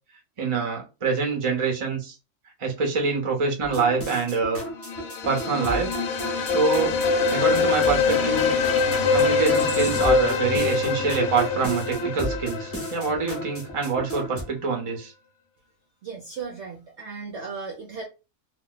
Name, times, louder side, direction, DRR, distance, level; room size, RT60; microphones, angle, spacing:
voice 1, 0.4-2.1 2.6-4.6 5.2-6.0 6.5-7.0 7.3-8.5 9.1-15.1, right 4 dB, 30° right, 0.6 m, -25 dB
sound 1, 3.6-14.4, equal, 20° left, 0.3 m, -33 dB
sound 2, 4.8-13.6, left 4 dB, 70° left, 0.9 m, -24 dB
voice 2, 16.0-18.1, right 5 dB, 65° right, 0.7 m, -36 dB
2.7 x 2.1 x 3.7 m
omnidirectional pair, 1.7 m